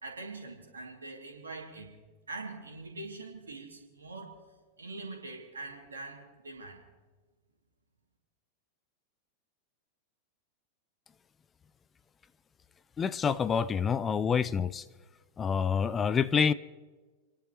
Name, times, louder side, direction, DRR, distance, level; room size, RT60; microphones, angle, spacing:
voice 1, 0.0-1.9 2.3-4.4 4.8-6.8, right 3 dB, 75° right, 2.3 m, -43 dB
voice 2, 13.0-14.8 15.4-16.5, left 6 dB, 20° left, 0.4 m, -27 dB
29.5 x 10.5 x 3.0 m
figure-of-eight pair, 90°, 0 cm